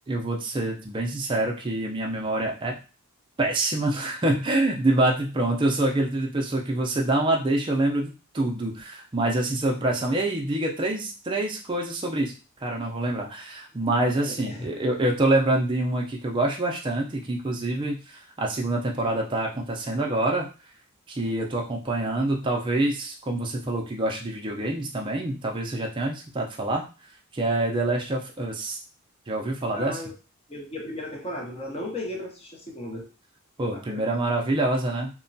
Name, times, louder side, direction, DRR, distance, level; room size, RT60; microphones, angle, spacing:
voice 1, 0.1-2.8 3.4-12.3 12.6-20.5 21.1-26.8 27.3-28.8 29.3-30.0 33.6-35.1, right 2 dB, 20° right, 0 dB, 0.4 m, -26 dB
voice 2, 14.2-14.7 29.7-30.1 30.5-33.1 33.7-34.2, left 1 dB, 30° left, 1 dB, 0.6 m, -35 dB
2.9 x 2.1 x 2.6 m, 0.33 s
head